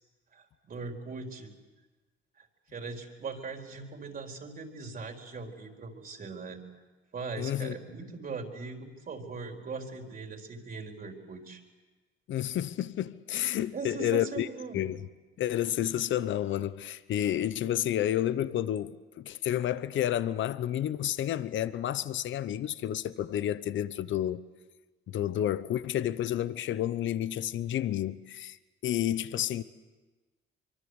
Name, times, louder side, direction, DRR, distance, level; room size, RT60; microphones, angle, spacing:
voice 1, 0.3-1.5 2.4-2.5 2.7-6.6 7.1-11.6 13.7-14.9, right 4 dB, 45° right, 4.3 m, -40 dB
voice 2, 7.4-7.7 12.3-14.5 14.7-15.1 15.4-24.4 25.1-28.6 28.8-29.6, left 11 dB, 70° left, 0.9 m, -30 dB
24.5 x 24.0 x 8.1 m
cardioid pair, 90°, 20 cm